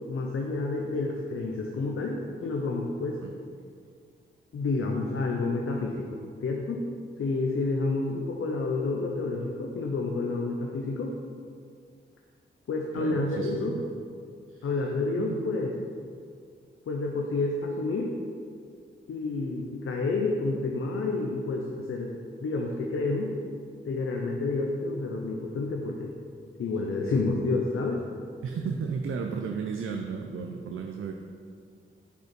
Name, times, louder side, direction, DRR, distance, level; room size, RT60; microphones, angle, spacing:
voice 1, 0.1-3.2 4.5-6.9 7.2-11.1 12.7-13.7 14.6-15.7 16.9-18.1 19.1-22.1 22.4-23.3 23.8-26.1 26.6-28.0, left 3 dB, 80° left, 0 dB, 0.8 m, -29 dB
voice 2, 13.0-13.8 14.5-14.7 15.2-15.4 28.4-31.1, right 5 dB, 75° right, 3 dB, 0.6 m, -34 dB
10.0 x 6.0 x 4.5 m, 2.2 s
wide cardioid pair, 150°, 21 cm